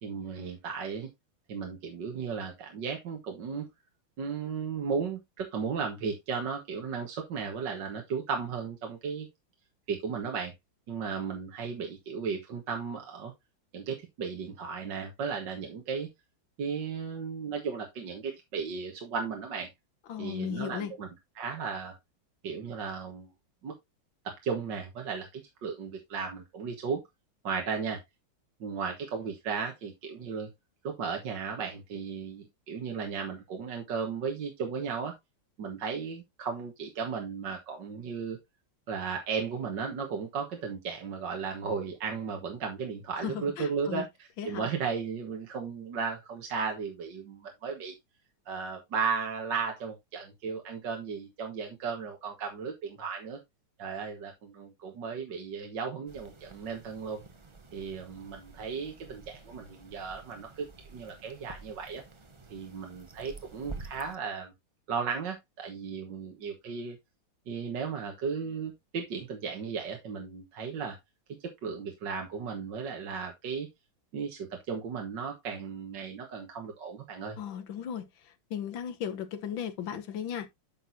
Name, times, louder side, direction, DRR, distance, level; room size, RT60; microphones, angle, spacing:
voice 1, 0.0-1.1 1.5-3.7 4.2-9.3 9.9-10.5 10.9-13.3 13.7-16.1 16.6-19.7 20.2-21.1 21.4-22.0 22.4-23.3 23.6-23.7 24.2-27.0 27.4-28.0 28.6-30.5 30.8-35.2 35.6-38.4 38.9-44.1 44.4-48.0 48.5-53.4 53.8-57.2 57.7-60.7 60.9-62.0 62.5-64.5 64.9-67.0 67.5-71.0 71.3-73.7 74.1-77.4, right 6 dB, 70° right, 2.0 m, -35 dB
voice 2, 20.1-20.9 43.2-44.0 44.4-44.7 77.4-78.1 78.5-80.5, left 9 dB, 90° left, 1.8 m, -36 dB
sound 1, 56.1-64.2, right 3 dB, 35° right, 0.5 m, -49 dB
9.9 x 6.2 x 2.7 m
omnidirectional pair, 2.0 m